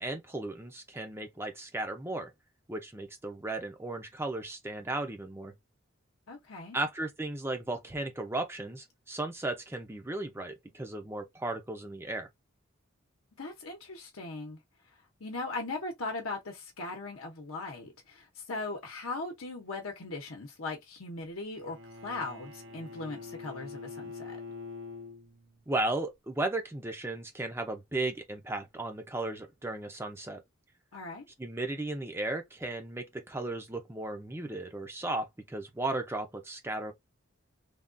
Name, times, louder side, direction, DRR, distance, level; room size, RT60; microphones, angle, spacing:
voice 1, 0.0-2.3 2.7-5.5 6.7-12.3 25.7-30.4 31.4-36.9, right 2 dB, 10° right, 0.4 m, -35 dB
voice 2, 6.3-6.8 13.4-14.6 15.2-21.8 22.0-24.4 30.9-31.2, left 3 dB, 75° left, 0.8 m, -39 dB
Bowed string instrument, 21.6-25.7, left 4 dB, 60° right, 0.6 m, -45 dB
3.4 x 2.3 x 2.5 m
head